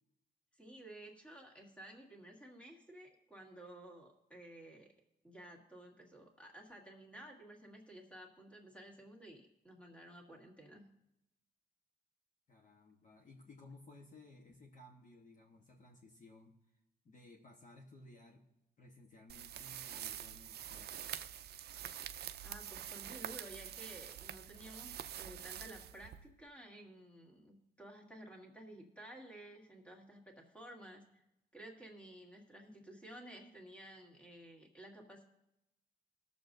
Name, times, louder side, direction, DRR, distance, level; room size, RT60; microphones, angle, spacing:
voice 1, 0.5-4.9 5.2-10.9 22.4-31.2 31.5-35.2, right 1 dB, 5° left, 0 dB, 2.1 m, -54 dB
voice 2, 12.5-16.6 17.0-18.4 18.8-21.1, left 2 dB, 45° left, 0 dB, 1.2 m, -58 dB
sound 1, 19.3-26.4, right 10 dB, 65° right, 0.4 m, -46 dB
21.0 x 7.0 x 2.6 m, 0.87 s
cardioid pair, 110°, 18 cm